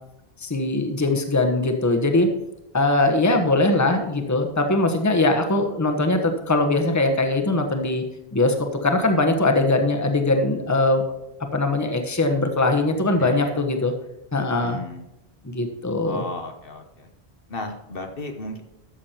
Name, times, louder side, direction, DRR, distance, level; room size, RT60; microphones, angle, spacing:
voice 1, 0.4-2.3 2.7-8.0 8.3-8.5 8.8-11.0 11.5-13.9 14.3-14.8 15.4-16.2, left 2 dB, 15° left, 5 dB, 1.1 m, -21 dB
voice 2, 13.1-13.6 14.6-15.1 16.0-17.1 17.5-18.6, left 2 dB, 60° left, 5 dB, 1.2 m, -34 dB
12.5 x 7.3 x 4.4 m, 0.92 s
omnidirectional pair, 1.1 m